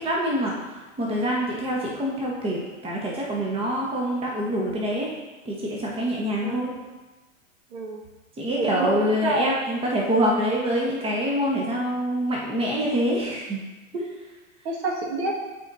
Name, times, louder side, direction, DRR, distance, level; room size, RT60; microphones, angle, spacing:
voice 1, 0.0-5.1 5.4-6.7 8.4-13.6 13.9-14.1, equal, 15° right, -3 dB, 1.1 m, -25 dB
voice 2, 7.7-8.0 8.6-9.6 14.6-15.4, right 2 dB, 50° right, -1 dB, 1.7 m, -28 dB
12.0 x 4.2 x 2.7 m, 1.2 s
hypercardioid pair, 105°, 39 cm